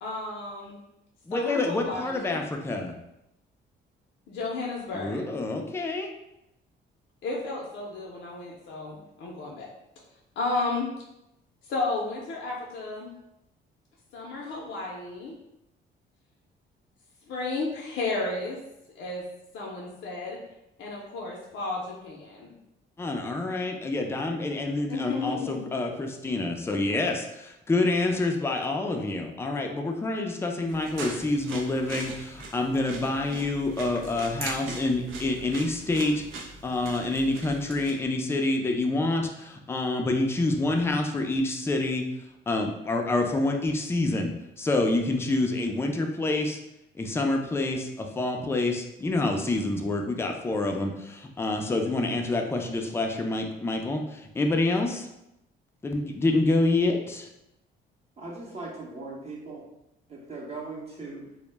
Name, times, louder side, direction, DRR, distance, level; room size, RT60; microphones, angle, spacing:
voice 1, 0.0-0.8 1.3-2.4 4.3-5.3 7.2-9.7 10.4-10.9 11.7-13.1 14.1-15.3 17.3-18.6 19.0-19.2 19.5-20.4 20.8-22.5 24.9-25.7, left 3 dB, 70° left, -2 dB, 0.5 m, -33 dB
voice 2, 1.3-2.9 4.9-6.1 23.0-36.2 36.6-42.0 42.5-46.6 47.0-55.1 55.8-57.3, left 2 dB, 15° left, 3 dB, 0.3 m, -27 dB
sound 1, 30.7-37.9, right 3 dB, 85° right, 0.5 m, -40 dB
voice 3, 58.2-59.7 60.1-61.3, right 3 dB, 30° right, -4 dB, 0.6 m, -39 dB
2.0 x 2.0 x 3.2 m, 0.87 s
cardioid pair, 90°, 20 cm